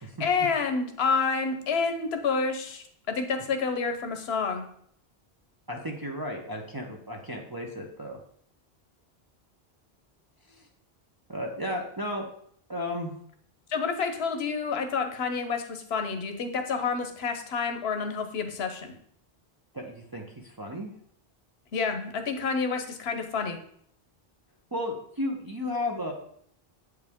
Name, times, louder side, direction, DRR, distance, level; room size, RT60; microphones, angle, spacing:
voice 1, 0.0-4.7 13.7-18.9 21.7-23.6, left 5 dB, 80° left, 6 dB, 1.1 m, -29 dB
voice 2, 5.7-8.2 11.3-12.3 12.7-13.1 19.7-20.9 24.7-26.1, left 1 dB, 25° right, 0 dB, 0.7 m, -33 dB
8.0 x 4.8 x 3.6 m, 0.66 s
omnidirectional pair, 1.1 m